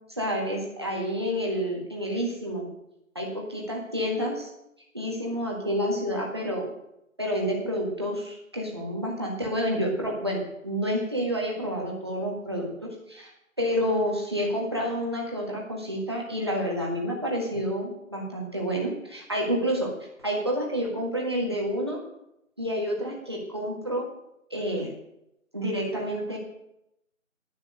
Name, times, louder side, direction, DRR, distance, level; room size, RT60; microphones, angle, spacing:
voice 1, 0.1-2.7 3.1-4.5 4.9-6.7 7.2-13.3 13.6-19.9 20.2-22.0 22.6-24.1 24.5-24.9 25.5-26.4, equal, 20° right, -2 dB, 1.6 m, -29 dB
10.5 x 10.0 x 6.5 m, 0.82 s
figure-of-eight pair, 180°, 41 cm